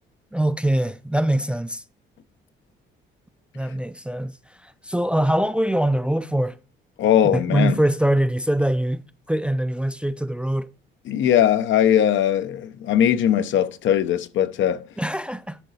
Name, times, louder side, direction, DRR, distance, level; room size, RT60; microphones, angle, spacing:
voice 1, 0.3-1.8 3.5-4.3 4.8-6.6 7.3-10.7 15.0-15.6, right 1 dB, 5° right, 0.3 m, -23 dB
voice 2, 7.0-7.7 11.1-14.9, left 10 dB, 75° left, 0.6 m, -20 dB
10.5 x 4.6 x 4.1 m
cardioid pair, 90°, 20 cm